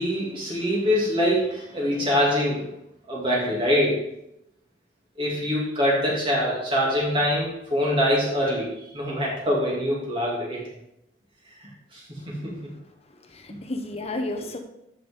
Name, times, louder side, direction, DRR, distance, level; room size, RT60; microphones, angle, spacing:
voice 1, 0.0-2.7 3.1-4.0 5.2-10.6 11.6-12.7, equal, 30° right, -4 dB, 2.8 m, -24 dB
voice 2, 13.1-14.6, left 2 dB, 35° left, 4 dB, 1.0 m, -33 dB
11.0 x 6.3 x 3.8 m, 0.85 s
head